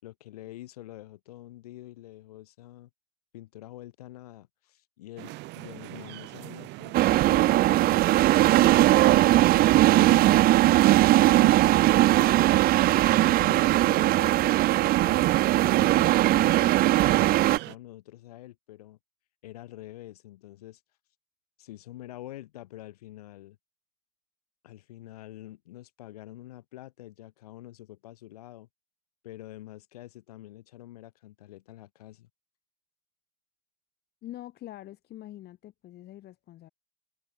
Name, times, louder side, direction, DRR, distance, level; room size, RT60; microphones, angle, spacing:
voice 1, 0.0-2.9 3.3-8.1 8.6-12.6 13.0-15.4 15.8-19.0 19.4-20.8 21.6-23.6 24.6-28.7 29.2-32.3, left 15 dB, 85° left, 6.8 m, -46 dB
sound 1, 5.2-17.8, right 21 dB, 65° right, 2.1 m, -41 dB
sound 2, 6.9-17.6, right 16 dB, 50° right, 0.5 m, -20 dB
voice 2, 34.2-36.7, left 14 dB, 60° left, 3.6 m, -44 dB
hypercardioid pair, 65°, 19 cm